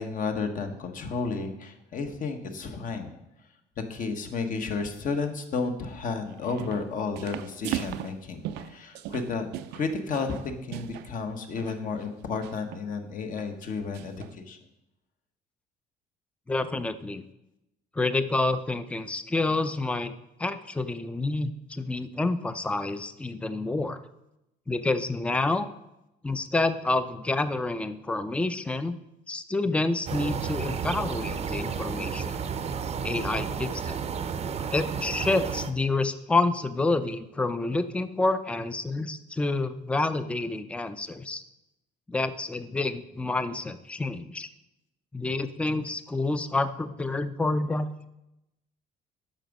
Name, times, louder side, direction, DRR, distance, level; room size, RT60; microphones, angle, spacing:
voice 1, 0.0-3.2 3.9-9.5 9.7-14.6, left 4 dB, 50° left, 6 dB, 1.2 m, -32 dB
sound 1, 6.3-6.9 7.1-11.1 11.5-11.7 12.4-12.9 13.4-13.5 13.9-14.3, right 12 dB, 90° right, 0.5 m, -37 dB
voice 2, 16.5-17.2 17.9-20.1 20.4-24.0 24.7-25.7 26.2-29.0 29.3-32.4 33.0-34.0 34.7-41.4 42.1-44.5 45.1-48.1, left 2 dB, 5° left, 12 dB, 0.5 m, -28 dB
sound 2, 30.1-35.7, right 6 dB, 40° right, 0.6 m, -32 dB
8.9 x 6.0 x 5.3 m, 0.90 s
cardioid pair, 110°, 17 cm